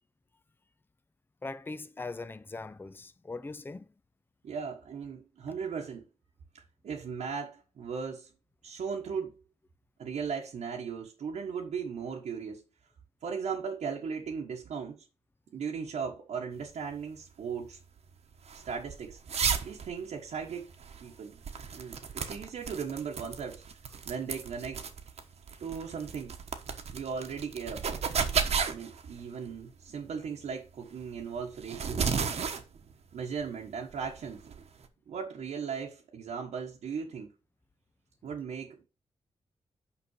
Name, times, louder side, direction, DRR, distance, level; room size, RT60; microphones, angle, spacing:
voice 1, 1.4-3.9, left 3 dB, 20° left, 0.5 m, -40 dB
voice 2, 4.4-6.1 6.5-8.3 8.6-9.3 10.0-12.6 13.2-15.0 15.5-17.8 18.6-19.2 19.6-20.7 21.0-21.4 21.7-23.6 24.1-24.9 25.6-26.3 26.9-28.0 28.7-32.1 33.1-34.4 35.1-37.3 38.2-38.9, right 6 dB, 85° right, 1.4 m, -37 dB
sound 1, 16.6-34.9, right 6 dB, 65° right, 1.2 m, -35 dB
5.9 x 5.2 x 6.4 m
cardioid pair, 85°, 12 cm